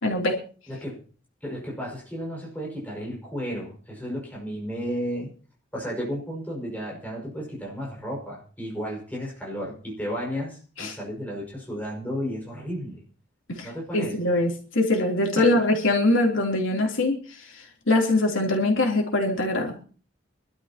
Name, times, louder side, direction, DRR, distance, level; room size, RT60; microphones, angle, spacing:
voice 1, 0.0-0.4 10.8-11.0 13.5-17.2 17.9-19.8, left 2 dB, 85° left, 0 dB, 3.2 m, -23 dB
voice 2, 0.7-1.0 1.4-5.3 5.7-13.0 13.6-14.2 15.4-15.5, equal, 10° left, -3 dB, 5.6 m, -33 dB
25.0 x 12.5 x 2.9 m, 0.39 s
head